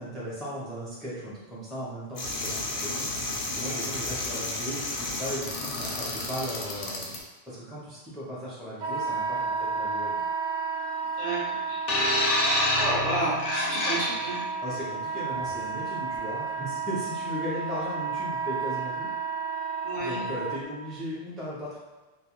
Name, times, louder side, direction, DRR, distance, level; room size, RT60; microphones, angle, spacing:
voice 1, 0.0-3.1 3.5-7.1 7.5-10.2 14.6-19.1 20.0-21.8, equal, ahead, -8 dB, 0.4 m, -37 dB
sound 1, 2.2-7.2, left 2 dB, 60° left, 0.6 m, -33 dB
Wind instrument woodwind instrument, 8.8-20.6, right 5 dB, 85° right, 0.9 m, -32 dB
voice 2, 11.2-11.8 12.8-14.4 19.8-20.2, right 1 dB, 40° right, -7 dB, 0.6 m, -31 dB
sound 2, 11.9-14.4 15.3-15.5, left 1 dB, 90° left, 0.9 m, -26 dB
2.3 x 2.2 x 2.9 m, 1.2 s
omnidirectional pair, 1.2 m